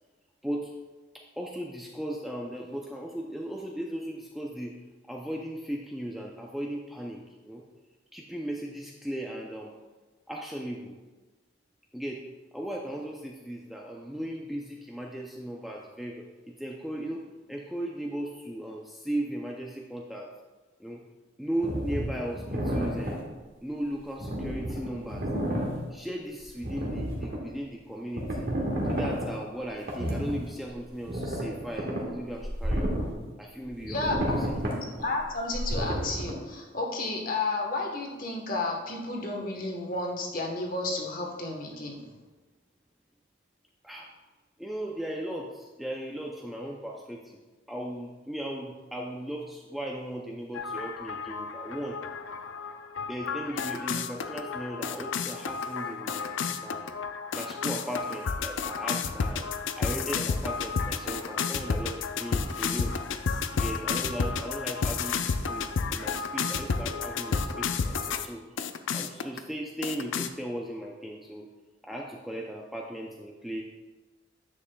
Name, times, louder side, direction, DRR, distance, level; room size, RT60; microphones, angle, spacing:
voice 1, 0.4-0.7 1.1-4.8 5.1-7.7 8.1-9.8 10.3-11.0 11.9-12.3 12.5-20.4 20.8-21.0 21.4-23.3 23.6-28.5 28.9-33.1 33.4-34.6 43.8-44.1 44.6-47.4 47.7-52.0 53.1-56.9 57.3-59.5 59.8-63.0 63.5-68.6 68.9-71.5 71.8-73.6, right 1 dB, ahead, -1 dB, 0.4 m, -37 dB
sound 1, 21.6-23.2 24.2-25.8 26.4-27.4 28.2-29.3 29.9-30.4 30.7-30.8 31.0-33.2 33.6-36.3, equal, 50° right, 1.5 m, -31 dB
voice 2, 33.9-34.5 35.0-42.0, left 2 dB, 40° left, 1 dB, 1.1 m, -32 dB
sound 2, 50.5-68.3 68.6-69.4 69.8-70.3, left 5 dB, 65° left, 0.4 m, -31 dB
9.9 x 7.3 x 2.3 m, 1.2 s
head